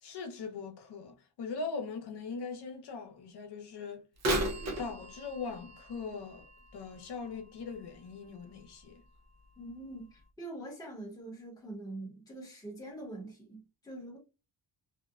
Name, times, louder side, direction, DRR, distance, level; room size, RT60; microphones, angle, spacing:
voice 1, 0.0-4.0 4.8-6.4 6.7-9.0, left 4 dB, 55° left, 0.7 m, -40 dB
Bird vocalization bird call bird song / Telephone, 4.2-8.0 8.5-8.6 9.4-9.5 10.2-10.3, right 1 dB, 35° right, 0.4 m, -36 dB
voice 2, 9.6-14.2, right 1 dB, 10° left, 0.8 m, -44 dB
2.7 x 2.1 x 2.3 m
wide cardioid pair, 165°, 49 cm